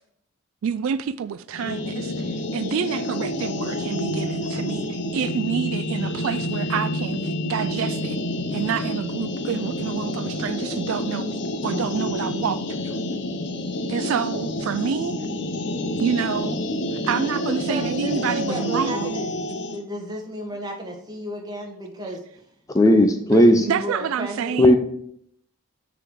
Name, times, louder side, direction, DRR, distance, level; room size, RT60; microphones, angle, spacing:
voice 1, 0.6-8.2 8.5-12.6 12.8-13.0 13.9-15.2 16.0-16.6 17.0-19.1 23.3-24.8, right 7 dB, 65° right, 0.3 m, -28 dB
sound 1, 1.5-19.8, left 1 dB, 50° left, 0.7 m, -28 dB
voice 2, 17.5-19.2 19.7-22.2 23.3-24.5, equal, 20° right, 1.2 m, -33 dB
voice 3, 22.7-23.7 24.6-24.8, left 1 dB, 15° left, 0.4 m, -15 dB
6.6 x 3.8 x 6.2 m
head